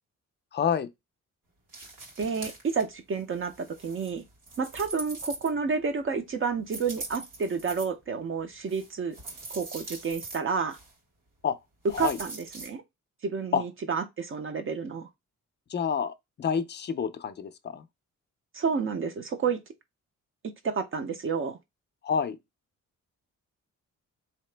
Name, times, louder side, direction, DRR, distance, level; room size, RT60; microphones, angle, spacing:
voice 1, 0.5-0.9 11.4-11.6 11.9-12.2 13.5-13.6 15.7-17.9 22.0-22.4, left 7 dB, 35° left, 0.4 m, -28 dB
sound 1, 1.7-2.8 3.2-5.8 6.6-7.9 8.7-10.4 10.7-10.9 11.9-12.7, right 2 dB, 75° right, 1.7 m, -42 dB
voice 2, 2.2-4.2 4.6-9.2 9.5-10.8 12.0-12.8 13.2-15.1 18.5-19.6 20.6-21.6, right 5 dB, 40° right, 0.5 m, -30 dB
4.0 x 2.9 x 3.2 m
wide cardioid pair, 175°, 31 cm